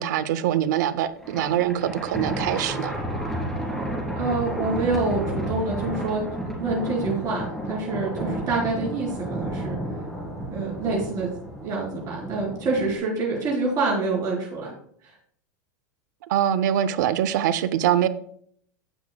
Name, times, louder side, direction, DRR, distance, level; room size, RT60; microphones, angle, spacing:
voice 1, 0.0-3.0 16.3-18.1, right 11 dB, 70° right, 14 dB, 0.6 m, -23 dB
Thunder, 1.2-13.0, right 1 dB, 5° left, 3.3 m, -31 dB
voice 2, 4.2-6.2 6.6-9.8 10.5-11.3 11.6-14.7, right 3 dB, 40° right, -3 dB, 3.9 m, -26 dB
16.0 x 6.0 x 2.3 m, 0.63 s
supercardioid pair, 120°, 10 cm